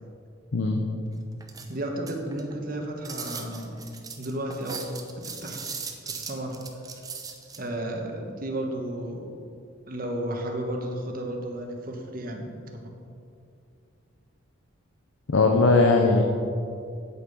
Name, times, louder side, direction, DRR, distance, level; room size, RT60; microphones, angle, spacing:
sound 1, 1.4-2.5 3.0-7.6, right 5 dB, 15° right, 0.6 m, -38 dB
voice 1, 1.7-3.9 4.2-5.0 5.2-5.6 6.0-6.5 6.9-7.0 7.6-9.3 9.9-12.9, right 1 dB, 40° right, 2 dB, 1.2 m, -33 dB
voice 2, 15.3-16.2, left 3 dB, 70° left, 2 dB, 0.7 m, -19 dB
8.5 x 8.3 x 5.4 m, 2.5 s
head